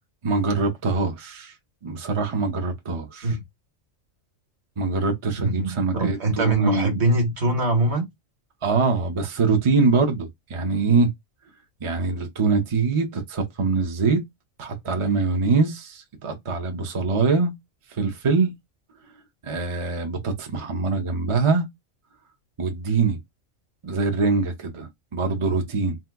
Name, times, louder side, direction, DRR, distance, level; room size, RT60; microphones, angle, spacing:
voice 1, 0.2-1.5 1.8-3.3 4.8-7.0 8.6-11.1 11.8-14.2 14.6-17.5 18.0-18.5 19.4-21.7 22.6-23.2 23.8-26.0, right 4 dB, 35° right, 0.5 m, -23 dB
voice 2, 5.4-8.0, right 2 dB, 60° right, 1.4 m, -23 dB
2.8 x 2.2 x 3.4 m
omnidirectional pair, 1.3 m